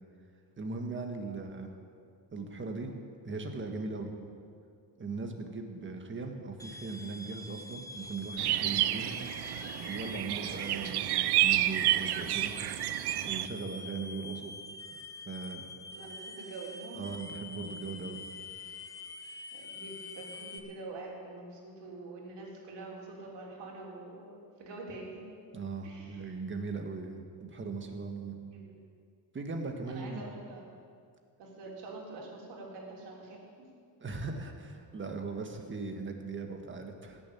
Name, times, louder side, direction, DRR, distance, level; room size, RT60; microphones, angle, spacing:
voice 1, 0.6-1.7 2.3-2.9 3.2-4.1 5.0-9.2 9.7-12.5 13.2-14.5 15.2-15.6 17.0-18.2 25.5-28.4 29.3-30.3 34.0-37.2, right 4 dB, 30° right, 4 dB, 1.5 m, -39 dB
voice 2, 1.2-1.7 15.9-17.0 19.5-25.3 25.8-26.4 28.5-28.8 29.9-30.6 31.4-33.7, right 3 dB, 90° right, -2 dB, 3.5 m, -45 dB
sound 1, 6.6-20.6, left 2 dB, 10° left, 0.8 m, -45 dB
sound 2, 8.4-13.5, right 14 dB, 70° right, 0.6 m, -30 dB
17.0 x 7.1 x 8.5 m, 2.3 s
cardioid pair, 145°, 41 cm